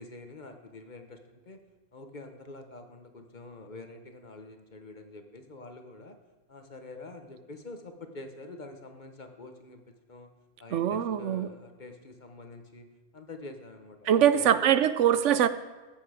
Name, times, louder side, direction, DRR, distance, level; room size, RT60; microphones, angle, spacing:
voice 1, 0.0-1.6 1.9-6.2 6.5-10.3 10.6-12.9 13.1-14.7, left 2 dB, 40° left, 6 dB, 1.1 m, -46 dB
voice 2, 10.7-11.5 14.0-15.5, right 10 dB, 75° right, 13 dB, 1.0 m, -23 dB
14.5 x 8.6 x 4.9 m, 1.3 s
omnidirectional pair, 1.3 m